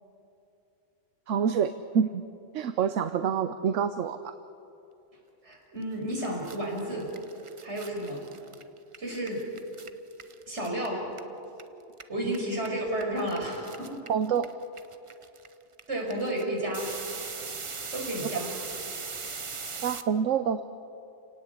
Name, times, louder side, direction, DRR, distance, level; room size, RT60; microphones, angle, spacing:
voice 1, 1.3-2.2 2.5-4.3 12.2-12.4 14.1-14.5 19.8-20.6, right 7 dB, 85° right, 10 dB, 1.1 m, -27 dB
voice 2, 5.4-7.1 7.6-8.3 9.0-9.4 10.5-11.1 12.1-14.0 15.9-16.9 17.9-18.6, right 1 dB, 65° right, -1 dB, 6.0 m, -32 dB
sound 1, 5.8-5.9 6.1-11.6 11.9-20.0, right 4 dB, 30° right, 0.7 m, -40 dB
29.0 x 18.0 x 8.3 m, 2.8 s
omnidirectional pair, 1.2 m